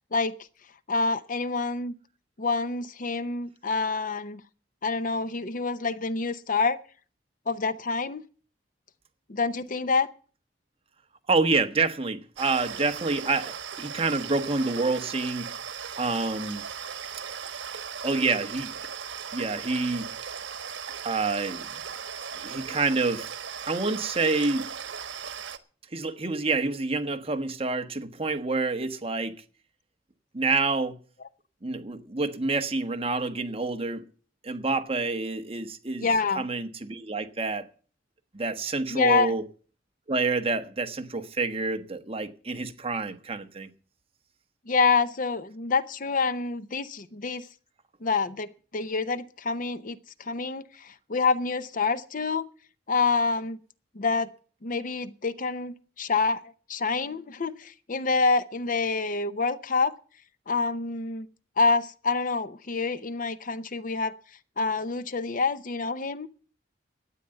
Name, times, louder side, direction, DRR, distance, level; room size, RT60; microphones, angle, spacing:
voice 1, 0.9-1.9 2.4-4.4 4.8-6.8 7.5-8.2 9.3-10.1 36.0-36.5 38.9-39.3 44.7-47.5 48.0-52.5 52.9-53.6 53.9-54.3 54.6-56.4 56.7-59.9 60.5-61.3 61.6-64.1 64.6-66.3, left 4 dB, 45° left, 0.7 m, -27 dB
voice 2, 11.3-15.5 16.0-16.6 18.0-18.7 19.3-20.1 21.0-21.7 22.4-23.3 23.6-24.7 25.9-29.3 30.3-31.0 31.6-34.0 34.4-36.1 36.3-37.7 38.3-39.4 40.1-43.7, right 3 dB, 30° right, 1.3 m, -28 dB
sound 1, 12.4-25.6, right 7 dB, 85° right, 1.2 m, -38 dB
12.5 x 9.3 x 7.7 m
head